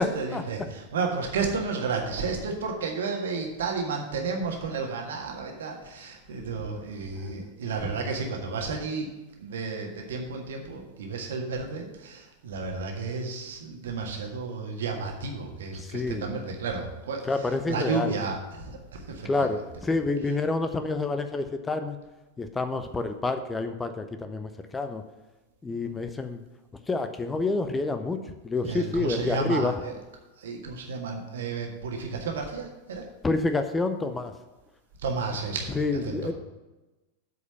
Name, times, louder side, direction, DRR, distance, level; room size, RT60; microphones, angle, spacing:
voice 1, 0.0-9.1 9.4-19.6 25.7-25.8 28.6-29.9 30.4-33.0 35.0-35.8 36.0-36.3, right 4 dB, 60° right, 2 dB, 1.6 m, -32 dB
voice 2, 15.8-16.3 17.3-18.1 19.2-22.0 22.4-25.0 25.6-26.4 26.9-29.7 33.2-34.3 35.7-36.3, left 3 dB, 15° left, 8 dB, 0.6 m, -28 dB
8.0 x 5.1 x 6.8 m, 1.1 s
figure-of-eight pair, 90°, 0 cm